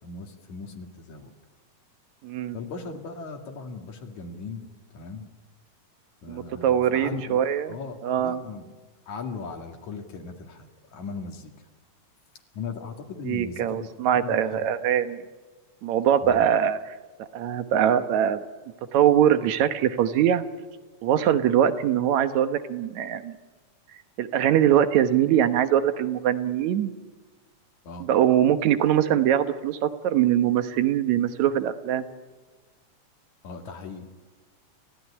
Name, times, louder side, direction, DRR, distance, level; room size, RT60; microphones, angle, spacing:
voice 1, 0.0-1.3 2.5-4.7 4.9-5.3 6.2-8.7 9.1-11.5 12.5-14.7 16.2-16.5 27.8-28.1 33.4-34.1, left 4 dB, 75° left, 3 dB, 3.4 m, -38 dB
voice 2, 2.2-2.6 6.3-7.8 8.0-8.4 13.2-15.2 15.8-16.8 17.3-18.4 18.9-20.4 21.0-23.4 24.2-26.9 28.0-32.1, right 10 dB, 75° right, 10 dB, 2.4 m, -22 dB
30.0 x 15.5 x 9.9 m, 1.3 s
omnidirectional pair, 3.4 m